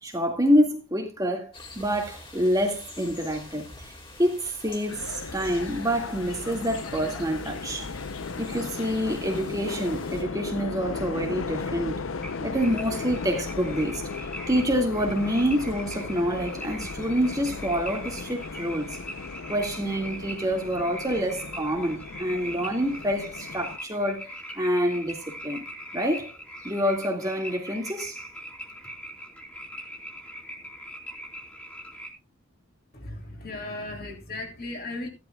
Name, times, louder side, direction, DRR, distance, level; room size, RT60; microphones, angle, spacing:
voice 1, 0.0-7.9 8.4-12.0 12.4-14.1 14.5-19.0 19.5-24.3 24.6-25.7 25.9-26.3 26.6-28.2, equal, 15° right, 1.9 m, -27 dB
sound 1, 1.5-10.2, left 2 dB, 25° left, 3.0 m, -46 dB
sound 2, 4.9-23.8, left 4 dB, 70° left, 0.6 m, -36 dB
sound 3, 12.2-32.1, equal, 5° left, 3.0 m, -41 dB
voice 2, 32.9-35.1, left 2 dB, 45° left, 3.2 m, -36 dB
16.0 x 12.0 x 2.3 m
head